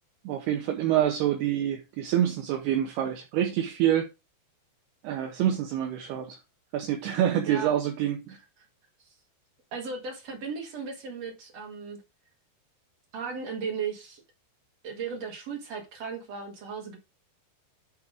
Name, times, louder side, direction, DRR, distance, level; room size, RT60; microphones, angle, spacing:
voice 1, 0.2-4.1 5.0-6.4 6.7-8.4, right 11 dB, 75° right, 2.6 m, -26 dB
voice 2, 9.7-12.0 13.1-14.2 14.8-17.0, right 5 dB, 50° right, 2.3 m, -36 dB
10.5 x 3.6 x 4.8 m
omnidirectional pair, 5.1 m